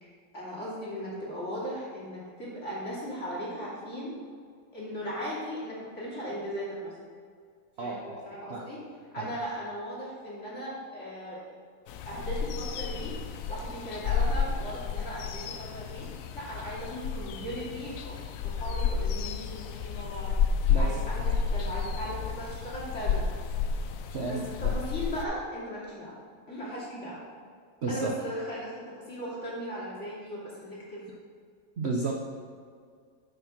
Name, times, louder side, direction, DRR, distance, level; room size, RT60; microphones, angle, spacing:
voice 1, 0.0-4.1 4.7-6.9 7.8-8.8 9.1-11.5 12.1-13.1 13.5-16.1 16.3-18.2 18.4-20.4 20.7-23.2 24.3-26.2 26.5-27.2 27.9-28.7 29.1-31.1, equal, 40° left, -7 dB, 3.1 m, -37 dB
voice 2, 7.8-8.2 8.5-8.7 9.2-9.3 20.7-21.3 24.1-24.7 27.8-28.1 31.8-32.1, right 3 dB, 55° right, 0 dB, 0.7 m, -33 dB
sound 1, 11.9-25.3, left 6 dB, 80° left, 0.7 m, -31 dB
9.4 x 5.6 x 5.8 m, 2.1 s
omnidirectional pair, 2.0 m